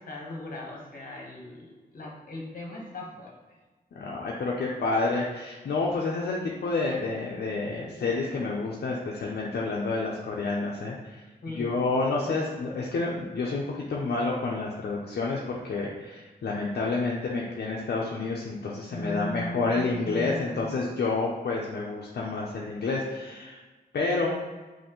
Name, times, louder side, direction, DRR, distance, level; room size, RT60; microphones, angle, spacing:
voice 1, 0.0-3.4 11.4-11.7 18.9-20.7, left 1 dB, 55° left, -2 dB, 1.2 m, -38 dB
voice 2, 3.9-11.2 11.6-23.6 23.9-24.4, left 3 dB, 75° left, -3 dB, 0.6 m, -29 dB
5.5 x 2.6 x 3.0 m, 1.3 s
wide cardioid pair, 125°, 17 cm